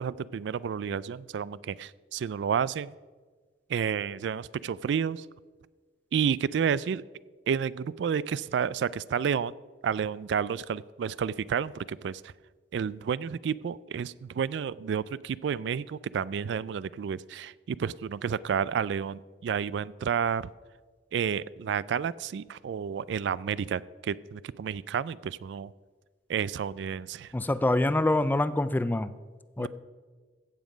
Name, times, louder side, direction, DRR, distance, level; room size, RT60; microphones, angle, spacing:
voice 1, 0.0-2.9 3.7-5.3 6.1-7.0 7.5-9.5 9.8-12.3 12.7-20.5 21.1-25.7 26.3-27.3 29.6-29.7, right 7 dB, 70° right, 19 dB, 0.3 m, -30 dB
voice 2, 27.3-29.1 29.6-29.7, left 1 dB, 10° left, 14 dB, 0.4 m, -25 dB
15.5 x 7.3 x 5.0 m, 1.4 s
head